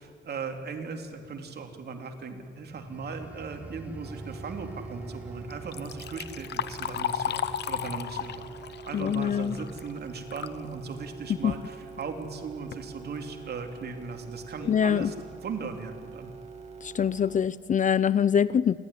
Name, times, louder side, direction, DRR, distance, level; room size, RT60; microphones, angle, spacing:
voice 1, 0.0-15.1 15.4-16.3, right 4 dB, 55° right, 4 dB, 3.0 m, -38 dB
sound 1, 2.6-13.0 13.4-13.7, right 2 dB, 5° right, 1.1 m, -48 dB
sound 2, 4.0-17.4, right 5 dB, 35° right, 2.7 m, -45 dB
Liquid, 5.5-10.6 11.0-11.1 12.0-12.1 12.5-12.9 13.5-13.6 14.1-14.2 14.6-14.8, left 9 dB, 60° left, 1.0 m, -34 dB
voice 2, 8.9-9.6 11.4-11.5 14.7-15.1 16.8-18.8, left 8 dB, 40° left, 19 dB, 0.5 m, -24 dB
30.0 x 12.5 x 9.9 m, 2.1 s
cardioid pair, 90°, 20 cm